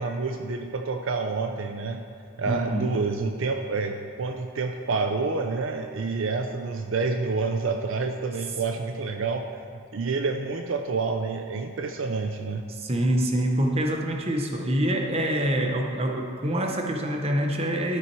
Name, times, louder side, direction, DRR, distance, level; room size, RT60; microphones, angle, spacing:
voice 1, 0.0-2.1 2.4-9.5 9.9-12.7, right 4 dB, 65° right, 5 dB, 0.5 m, -28 dB
voice 2, 2.5-2.9 12.7-18.0, right 1 dB, 30° right, 2 dB, 1.0 m, -26 dB
13.0 x 6.0 x 4.6 m, 2.4 s
head